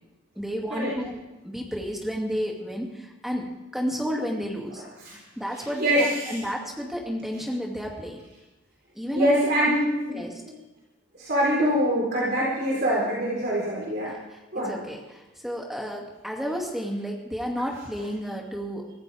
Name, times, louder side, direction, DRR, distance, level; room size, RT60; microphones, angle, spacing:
voice 1, 0.4-3.5 3.7-4.8 5.4-8.2 9.0-9.3 9.7-9.8 10.1-10.3 14.1-14.2 14.5-18.9, equal, ahead, -1 dB, 2.5 m, -31 dB
voice 2, 5.5-6.4 9.1-10.5 11.1-14.1 14.5-14.8, equal, 50° right, -5 dB, 4.2 m, -24 dB
24.0 x 14.5 x 3.6 m, 1.1 s
head